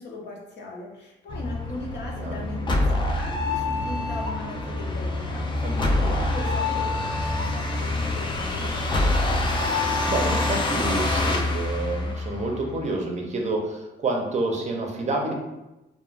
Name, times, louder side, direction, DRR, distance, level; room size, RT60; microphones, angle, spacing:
voice 1, 0.0-9.7, left 3 dB, 60° left, -1 dB, 0.7 m, -39 dB
sound 1, 1.3-12.8, left 2 dB, 25° left, 0.4 m, -26 dB
voice 2, 5.6-6.2 10.1-15.3, right 2 dB, 35° right, 1 dB, 0.5 m, -28 dB
2.4 x 2.1 x 3.1 m, 0.98 s
cardioid pair, 90°, 20 cm